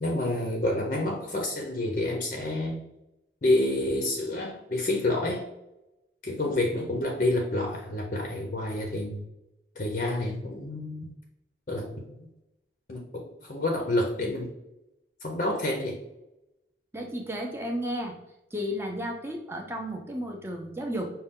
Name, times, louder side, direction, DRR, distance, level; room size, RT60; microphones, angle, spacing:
voice 1, 0.0-2.8 3.4-5.4 6.2-9.2 9.8-11.1 11.7-11.9 12.2-12.3 12.9-13.0 13.5-14.5 15.2-16.0, left 1 dB, 45° left, 1 dB, 0.6 m, -28 dB
voice 2, 16.9-18.1 18.5-21.1, equal, 15° right, 2 dB, 0.6 m, -33 dB
5.3 x 2.2 x 3.6 m, 0.90 s
head